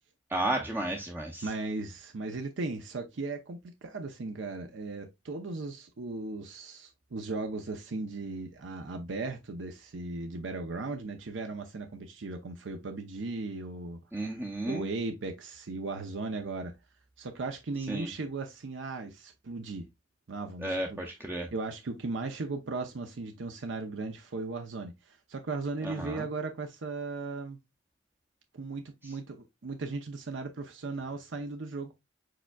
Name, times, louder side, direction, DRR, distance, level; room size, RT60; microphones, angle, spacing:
voice 1, 0.3-1.4 14.1-14.9 17.9-18.1 20.6-21.5 25.8-26.2, right 1 dB, 10° right, 0.5 m, -33 dB
voice 2, 1.4-14.0 14.7-16.7 17.2-19.9 20.3-21.0 21.5-27.6 28.5-31.9, right 3 dB, 75° right, 0.6 m, -37 dB
4.9 x 4.4 x 2.2 m
head